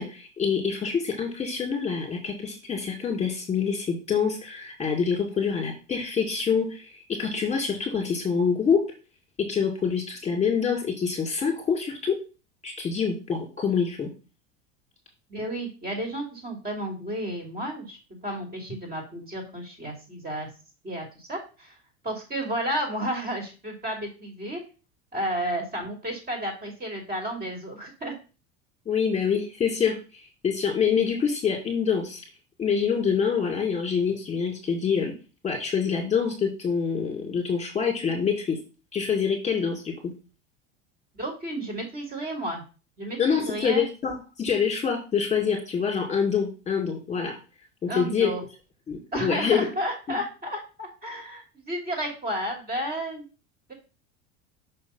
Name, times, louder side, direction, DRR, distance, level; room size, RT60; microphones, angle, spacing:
voice 1, 0.0-8.8 9.4-12.2 12.6-14.1 28.9-32.2 32.6-35.1 35.4-38.6 38.9-40.1 43.2-47.3 47.8-48.3 48.9-49.7 50.1-50.2, left 6 dB, 20° left, 0 dB, 2.3 m, -26 dB
voice 2, 15.3-18.0 18.2-20.5 20.8-21.7 22.0-24.6 25.1-28.1 41.2-42.6 43.0-43.9 47.9-48.4 49.1-53.2, right 1 dB, 25° right, 2 dB, 2.9 m, -32 dB
6.1 x 3.5 x 5.6 m, 0.33 s
hypercardioid pair, 95°, 35 cm